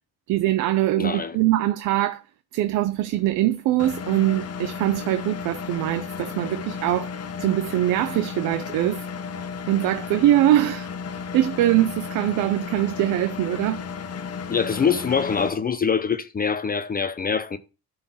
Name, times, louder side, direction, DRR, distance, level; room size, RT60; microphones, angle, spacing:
voice 1, 0.3-2.2 2.5-7.1 7.4-9.1 9.7-13.8, right 14 dB, 90° right, 0.6 m, -22 dB
voice 2, 1.0-1.4 14.5-17.6, left 6 dB, 30° left, 0.6 m, -24 dB
Engine, 3.8-15.5, left 6 dB, 55° left, 1.0 m, -34 dB
11.0 x 4.0 x 5.6 m
cardioid pair, 90°, 30 cm